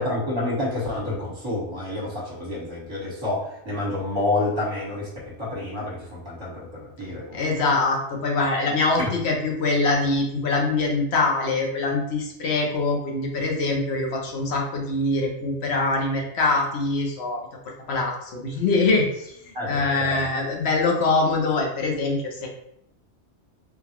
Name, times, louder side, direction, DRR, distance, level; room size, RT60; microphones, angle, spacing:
voice 1, 0.0-7.5 19.5-20.3, left 2 dB, 25° right, -5 dB, 1.2 m, -29 dB
voice 2, 7.3-17.4 17.9-19.3 19.7-22.5, left 3 dB, 70° left, 0 dB, 1.0 m, -23 dB
3.8 x 2.3 x 2.9 m, 0.77 s
omnidirectional pair, 1.2 m